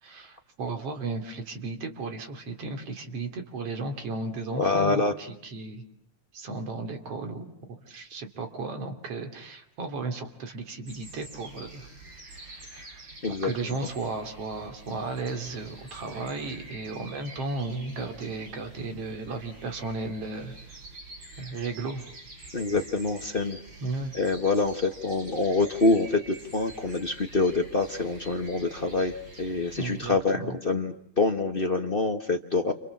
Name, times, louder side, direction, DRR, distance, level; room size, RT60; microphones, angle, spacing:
voice 1, 0.0-5.8 6.3-7.5 7.9-11.9 12.2-20.5 21.4-22.0 23.8-24.1 29.8-30.6, right 3 dB, 55° right, 5 dB, 3.8 m, -35 dB
voice 2, 4.6-5.1 13.2-13.5 22.5-23.6 24.1-32.7, left 3 dB, 55° left, 4 dB, 0.6 m, -26 dB
sound 1, 10.9-30.1, right 2 dB, 40° right, 5.9 m, -47 dB
29.0 x 28.0 x 7.3 m, 0.68 s
omnidirectional pair, 3.3 m